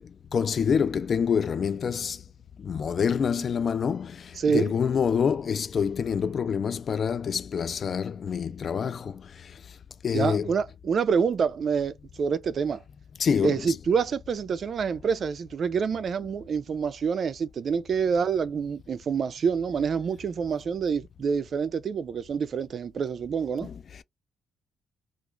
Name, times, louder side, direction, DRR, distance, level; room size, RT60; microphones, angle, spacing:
voice 1, 0.0-2.2 2.6-9.6 10.0-10.5 13.2-13.8 23.6-24.0, left 7 dB, 50° left, 0.3 m, -27 dB
voice 2, 4.4-4.7 10.1-12.8 13.4-23.7, right 6 dB, 50° right, 0.4 m, -27 dB
2.4 x 2.4 x 3.1 m
cardioid pair, 90°, 0 cm